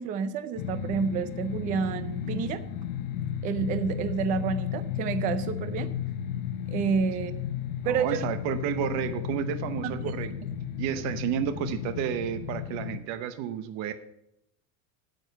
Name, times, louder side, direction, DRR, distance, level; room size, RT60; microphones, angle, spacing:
voice 1, 0.0-2.6 3.4-5.9 6.7-7.4 7.9-8.2 9.8-9.9, right 6 dB, 20° right, 13 dB, 0.4 m, -29 dB
sound 1, 0.6-13.0, left 9 dB, 60° left, 0.9 m, -34 dB
voice 2, 7.8-10.5 10.8-13.9, right 9 dB, 40° right, 11 dB, 0.8 m, -31 dB
9.2 x 9.0 x 5.3 m, 0.78 s
cardioid pair, 170°, 44 cm